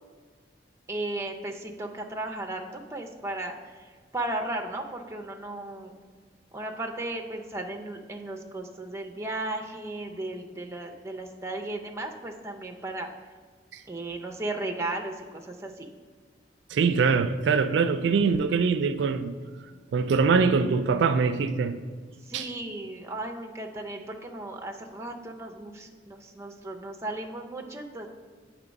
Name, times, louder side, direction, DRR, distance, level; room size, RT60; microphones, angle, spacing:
voice 1, 0.9-3.5 4.1-5.9 6.5-13.1 13.9-15.9 22.3-28.1, right 2 dB, 15° right, 0.5 m, -35 dB
voice 2, 16.7-19.4 19.9-21.8 22.3-22.5, right 5 dB, 80° right, 0.3 m, -23 dB
8.2 x 3.1 x 5.2 m
head